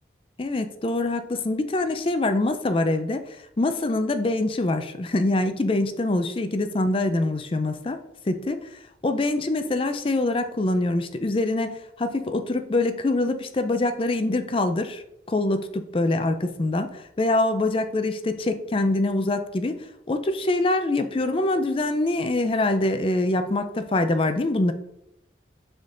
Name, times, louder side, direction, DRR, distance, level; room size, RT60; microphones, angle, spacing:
voice 1, 0.4-8.0 8.2-24.7, left 2 dB, 30° left, 8 dB, 0.4 m, -24 dB
7.4 x 3.7 x 3.8 m, 0.80 s
head